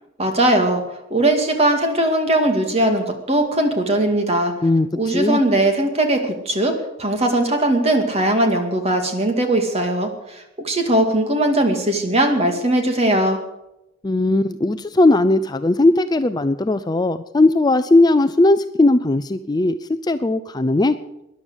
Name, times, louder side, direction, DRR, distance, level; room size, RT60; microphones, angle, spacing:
voice 1, 0.2-0.8 1.1-4.5 5.0-13.4, right 1 dB, 30° right, 5 dB, 2.2 m, -19 dB
voice 2, 4.6-5.4 14.0-19.8 20.0-21.0, left 2 dB, 20° left, 11 dB, 0.4 m, -17 dB
13.5 x 11.0 x 8.1 m, 0.90 s
head